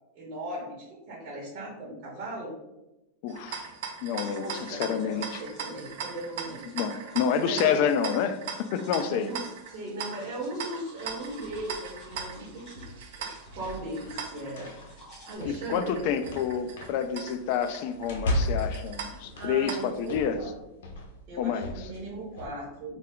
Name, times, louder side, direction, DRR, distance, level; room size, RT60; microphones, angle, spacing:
voice 1, 0.1-2.5 4.3-6.7 7.4-7.8 9.0-12.8 13.2-16.0 19.0-20.5 21.3-23.0, right 1 dB, 35° right, -4 dB, 1.0 m, -38 dB
voice 2, 3.2-3.7 4.0-5.4 6.6-9.3 15.5-20.4 21.4-21.9, left 7 dB, 50° left, 9 dB, 0.3 m, -28 dB
sound 1, 3.3-20.2, right 6 dB, 65° right, 0.5 m, -40 dB
sound 2, 4.2-15.4, equal, 30° left, 1.0 m, -55 dB
sound 3, 11.0-22.5, left 1 dB, 85° left, 0.7 m, -37 dB
3.2 x 2.3 x 3.6 m, 0.96 s
supercardioid pair, 155°, 0 cm